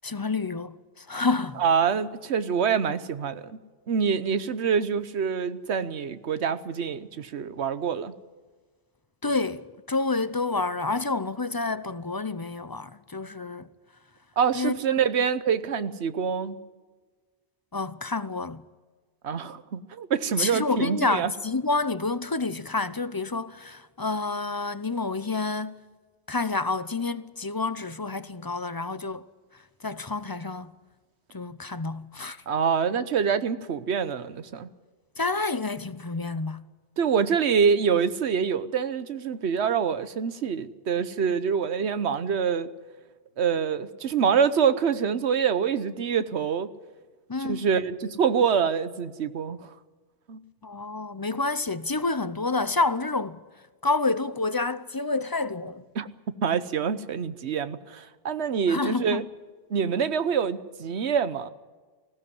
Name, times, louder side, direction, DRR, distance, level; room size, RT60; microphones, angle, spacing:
voice 1, 0.0-1.6 9.2-13.7 14.5-15.0 17.7-18.6 20.4-25.8 26.3-29.3 29.8-30.7 31.3-32.4 35.2-36.6 47.3-47.7 50.6-53.4 53.8-55.8 58.7-59.3, left 3 dB, 25° left, 0.6 m, -29 dB
voice 2, 1.6-3.5 3.9-8.1 14.4-16.6 19.2-21.3 32.5-34.7 37.0-42.7 43.4-46.7 47.4-49.7 50.3-50.4 55.9-56.1 56.4-59.2 59.7-61.5, right 7 dB, 90° right, 1.2 m, -25 dB
19.5 x 16.0 x 9.6 m
omnidirectional pair, 1.1 m